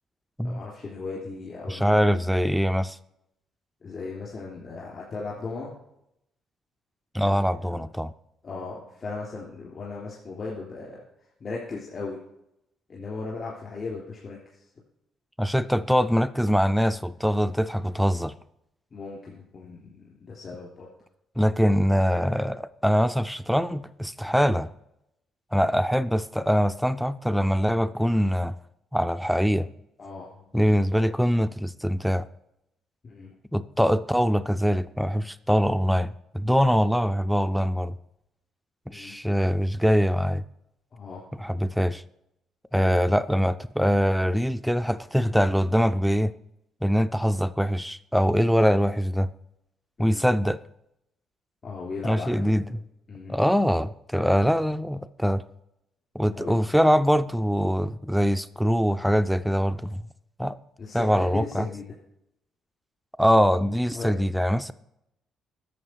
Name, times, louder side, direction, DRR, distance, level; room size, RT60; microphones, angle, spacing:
voice 1, 0.4-2.3 3.8-5.8 7.2-7.8 8.4-11.0 11.4-12.2 12.9-14.7 18.9-20.9 30.0-30.4 30.7-31.1 33.0-33.3 38.9-39.2 40.9-41.3 42.7-43.0 50.0-50.2 51.6-52.7 53.1-53.3 56.3-56.6 60.8-61.9 63.9-64.1, left 4 dB, 45° left, -4 dB, 3.3 m, -37 dB
voice 2, 1.7-3.0 7.1-8.1 15.4-18.3 21.4-24.7 25.5-28.5 28.9-29.7 30.5-32.2 33.5-37.9 38.9-40.4 41.4-42.0 42.7-46.3 46.8-49.3 50.0-50.6 52.0-52.6 53.3-55.4 56.1-60.0 60.4-60.6 60.9-61.7 63.2-64.7, equal, ahead, 12 dB, 0.4 m, -23 dB
11.0 x 6.9 x 4.6 m, 0.82 s
cardioid pair, 85°, 0 cm